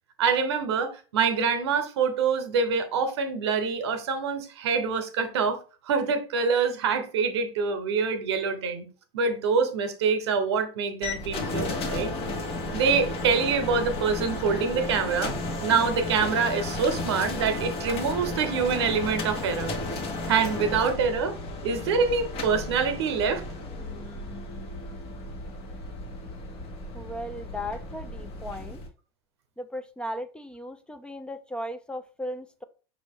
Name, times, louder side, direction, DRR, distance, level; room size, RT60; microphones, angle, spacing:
voice 1, 0.2-5.6 5.9-8.9 9.1-12.1 12.7-15.4 15.6-19.7 20.3-21.4 21.6-23.4, right 5 dB, 85° right, 0.8 m, -25 dB
sound 1, 11.0-28.9, left 2 dB, 45° left, 1.2 m, -34 dB
voice 2, 26.9-28.8 29.6-32.6, equal, 5° left, 0.4 m, -36 dB
5.3 x 2.6 x 3.5 m
supercardioid pair, 105°, 14 cm